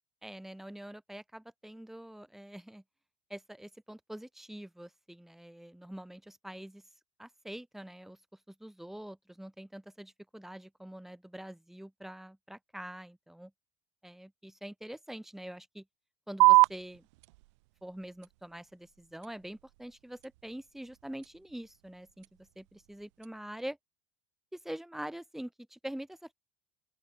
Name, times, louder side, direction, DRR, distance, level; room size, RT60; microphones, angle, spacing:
voice 1, 0.2-2.8 3.3-6.8 7.2-8.2 8.5-13.5 14.0-15.8 16.3-17.0 17.8-23.8 24.5-26.3, right 1 dB, ahead, 5.9 m, -45 dB
sound 1, 16.4-23.4, right 23 dB, 85° right, 2.3 m, -31 dB
open air
cardioid pair, 150°, 15 cm